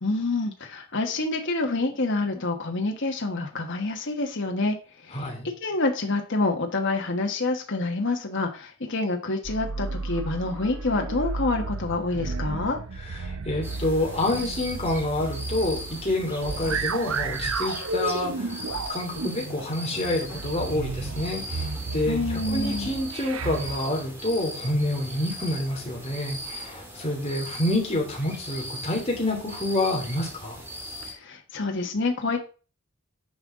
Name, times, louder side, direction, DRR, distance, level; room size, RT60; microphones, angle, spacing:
voice 1, 0.0-4.8 5.0-12.8 22.1-22.9 31.0-32.5, left 2 dB, 60° left, 3 dB, 1.4 m, -27 dB
voice 2, 5.1-5.5 13.1-18.6 18.9-30.6, left 1 dB, 30° left, -1 dB, 3.0 m, -28 dB
sound 1, 9.4-23.8, right 3 dB, 70° right, 0.7 m, -33 dB
sound 2, 13.6-31.1, equal, 10° right, 2.1 m, -39 dB
10.5 x 5.5 x 3.7 m, 0.35 s
head